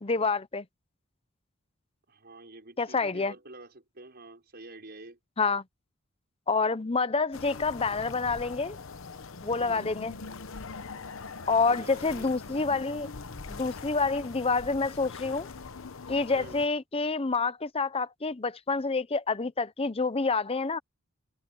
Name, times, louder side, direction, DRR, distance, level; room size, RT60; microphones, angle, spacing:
voice 1, 0.0-0.6 2.8-3.3 5.4-5.6 6.5-8.8 9.4-10.2 11.5-13.1 13.5-15.5 16.1-20.8, left 4 dB, 25° left, 0.7 m, -28 dB
voice 2, 2.1-5.2 9.6-9.9 11.3-12.3 16.3-16.6, right 2 dB, 45° right, 5.8 m, -48 dB
sound 1, 7.3-16.7, left 4 dB, 65° left, 0.9 m, -42 dB
head